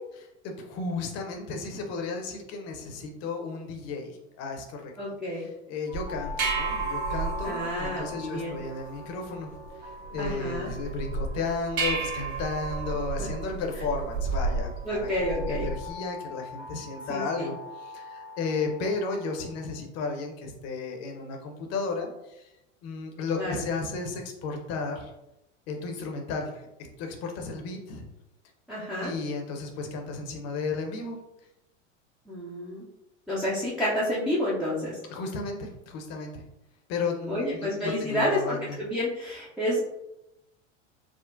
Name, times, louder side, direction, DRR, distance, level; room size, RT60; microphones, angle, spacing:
voice 1, 0.4-9.5 9.8-15.1 15.4-22.5 22.8-25.1 25.7-26.7 27.0-28.0 29.0-31.2 35.1-36.4 36.9-38.8, left 4 dB, 40° left, 3 dB, 0.7 m, -34 dB
voice 2, 5.0-5.4 7.4-8.6 10.2-10.7 14.8-15.7 17.1-17.5 23.4-23.6 28.7-29.1 32.3-32.8 33.3-35.0 37.3-39.8, equal, ahead, -8 dB, 0.4 m, -29 dB
sound 1, 5.9-15.9, right 4 dB, 45° right, 0.9 m, -33 dB
sound 2, 5.9-19.8, left 4 dB, 80° right, 1.0 m, -44 dB
3.6 x 2.0 x 2.5 m, 0.90 s
hypercardioid pair, 95°, 38 cm